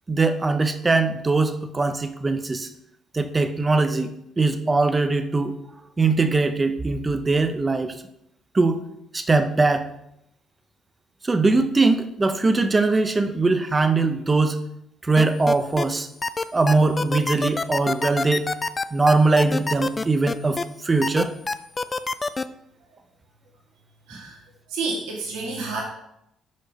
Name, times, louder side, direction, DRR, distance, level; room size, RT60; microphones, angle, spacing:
voice 1, 0.1-2.7 3.1-5.5 6.0-7.9 8.5-8.8 9.1-9.9 11.2-14.6 15.0-16.1 16.5-18.4 18.9-20.6 20.8-21.3, right 3 dB, 25° right, 8 dB, 0.7 m, -21 dB
sound 1, 15.2-15.9 16.2-20.6 21.0-22.4, left 3 dB, 30° left, 0.3 m, -26 dB
voice 2, 24.1-25.8, right 3 dB, 90° right, -1 dB, 1.4 m, -30 dB
5.3 x 5.1 x 4.0 m, 0.78 s
supercardioid pair, 75°, 0 cm